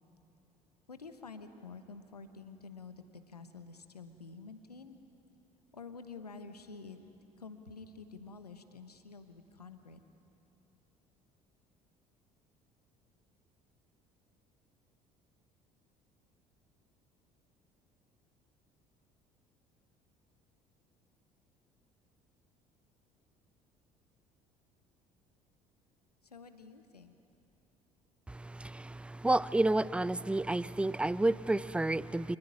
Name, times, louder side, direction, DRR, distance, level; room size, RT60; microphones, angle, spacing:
voice 1, 0.9-5.0 5.7-7.0 7.4-10.0 26.2-27.1, left 4 dB, 85° left, 9 dB, 1.2 m, -49 dB
voice 2, 28.3-32.4, right 2 dB, 5° right, 20 dB, 0.5 m, -30 dB
26.0 x 20.0 x 9.8 m, 2.8 s
figure-of-eight pair, 55°, 20 cm